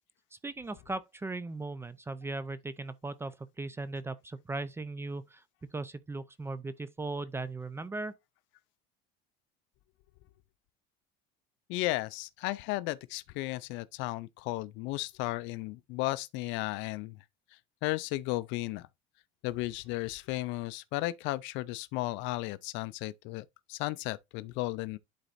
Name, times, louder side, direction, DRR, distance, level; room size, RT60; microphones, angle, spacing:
voice 1, 0.4-5.4 5.7-8.1, right 3 dB, 10° right, 0.5 m, -38 dB
voice 2, 11.7-17.2 17.8-18.9 19.4-25.0, left 19 dB, 65° left, 0.5 m, -34 dB
11.5 x 4.0 x 2.5 m
supercardioid pair, 125°, 21 cm